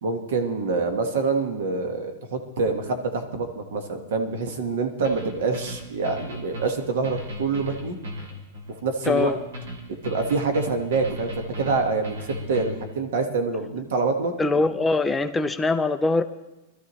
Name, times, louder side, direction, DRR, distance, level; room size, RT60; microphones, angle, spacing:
voice 1, 0.0-8.0 8.8-9.3 9.9-14.3, right 4 dB, 60° right, 6 dB, 1.4 m, -26 dB
sound 1, 5.0-12.9, equal, 75° right, 3.1 m, -36 dB
voice 2, 9.1-9.4 14.4-16.2, left 3 dB, 5° left, 9 dB, 0.4 m, -22 dB
20.0 x 13.0 x 3.1 m, 1.0 s
supercardioid pair, 180°, 0 cm